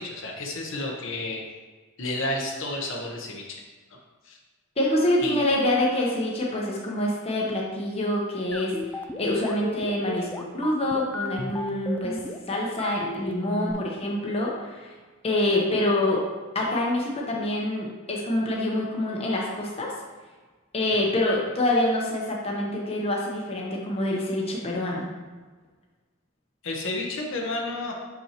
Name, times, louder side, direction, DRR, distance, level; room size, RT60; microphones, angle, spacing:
voice 1, 0.0-1.4 2.0-3.6 4.2-4.4 5.2-5.4 26.6-28.0, left 2 dB, 60° left, -1 dB, 0.9 m, -31 dB
voice 2, 4.8-12.2 12.5-14.9 15.2-16.2 16.5-19.9 20.7-25.1, left 1 dB, 30° left, -2 dB, 0.9 m, -26 dB
sound 1, 8.5-13.7, left 1 dB, 10° left, 0.3 m, -34 dB
6.3 x 5.6 x 2.9 m, 1.4 s
head